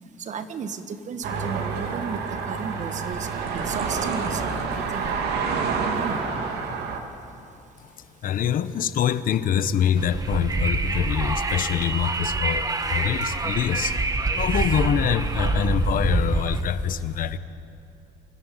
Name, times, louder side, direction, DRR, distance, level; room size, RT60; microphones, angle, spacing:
voice 1, 0.2-3.3 3.5-5.1 5.9-6.2, right 5 dB, 45° right, 10 dB, 1.4 m, -34 dB
sound 1, 1.2-7.0, right 5 dB, 80° right, 2.5 m, -28 dB
voice 2, 8.2-14.0 14.4-17.4, left 9 dB, 55° left, 14 dB, 0.9 m, -25 dB
Wind, 10.0-16.6, right 3 dB, 20° right, 1.4 m, -26 dB
25.0 x 13.5 x 9.2 m, 2.8 s
cardioid pair, 110°, 17 cm